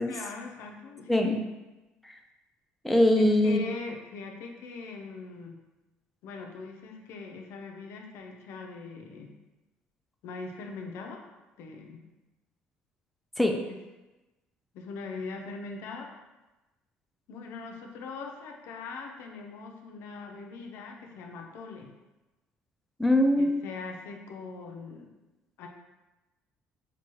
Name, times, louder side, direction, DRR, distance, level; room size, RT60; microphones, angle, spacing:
voice 1, 0.1-1.4 3.2-5.6 6.2-9.4 10.2-11.2 11.6-12.1 14.7-16.1 17.3-22.0 23.4-25.1 25.6-25.7, left 4 dB, 75° left, 3 dB, 0.6 m, -41 dB
voice 2, 1.1-1.4 2.0-2.1 2.8-3.6 13.4-13.7 23.0-23.7, left 1 dB, ahead, 3 dB, 0.3 m, -23 dB
5.8 x 2.2 x 3.0 m, 1.1 s
cardioid pair, 135°, 4 cm